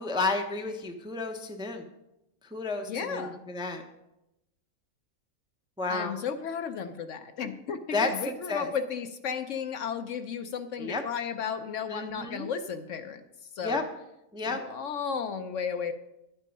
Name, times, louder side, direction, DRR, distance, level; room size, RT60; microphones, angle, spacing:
voice 1, 0.0-1.9 2.4-3.8 5.8-6.2 7.9-8.7 10.8-11.0 11.9-12.5 13.6-13.8 14.3-14.6, left 3 dB, 5° right, 4 dB, 0.6 m, -31 dB
voice 2, 2.9-3.4 5.9-13.2 13.6-13.8 14.4-15.9, left 6 dB, 65° left, 8 dB, 0.9 m, -34 dB
11.0 x 8.2 x 5.3 m, 0.89 s
omnidirectional pair, 1.5 m